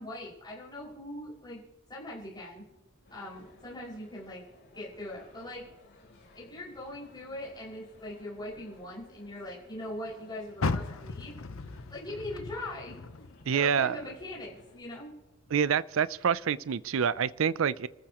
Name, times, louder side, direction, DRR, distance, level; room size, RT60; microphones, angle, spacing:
voice 1, 0.0-1.6 1.9-2.7 3.1-4.4 4.7-5.7 6.3-11.3 11.9-15.1, left 1 dB, 20° left, -7 dB, 5.7 m, -41 dB
sound 1, 3.0-14.8, left 2 dB, 55° left, 4.6 m, -58 dB
Car, 10.6-13.8 14.2-15.6 16.1-16.2 16.8-16.9, left 3 dB, 80° left, 0.8 m, -36 dB
voice 2, 13.5-14.0 15.5-17.9, right 7 dB, 65° right, 18 dB, 0.4 m, -27 dB
30.0 x 14.0 x 3.0 m, 1.1 s
head